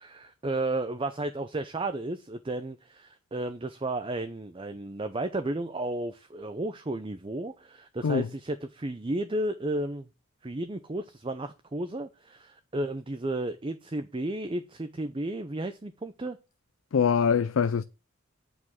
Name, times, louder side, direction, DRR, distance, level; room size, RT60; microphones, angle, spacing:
voice 1, 0.0-10.1 10.4-16.4, right 2 dB, 25° right, 0.6 m, -33 dB
voice 2, 16.9-17.8, left 6 dB, 70° left, 0.4 m, -23 dB
8.4 x 5.1 x 7.2 m
head